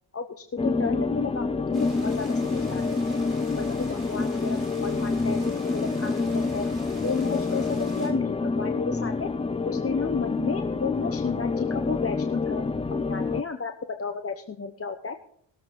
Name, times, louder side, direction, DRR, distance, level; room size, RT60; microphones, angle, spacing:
voice 1, 0.1-3.2 3.5-5.4 5.7-6.7 7.0-9.3 9.6-12.8 13.1-15.2, left 5 dB, 30° left, 7 dB, 0.9 m, -33 dB
sound 1, 0.6-13.4, left 4 dB, 15° left, 0.4 m, -27 dB
sound 2, 1.7-8.1, right 2 dB, 35° right, 6.6 m, -46 dB
20.5 x 7.6 x 3.8 m, 0.65 s
cardioid pair, 80°, 48 cm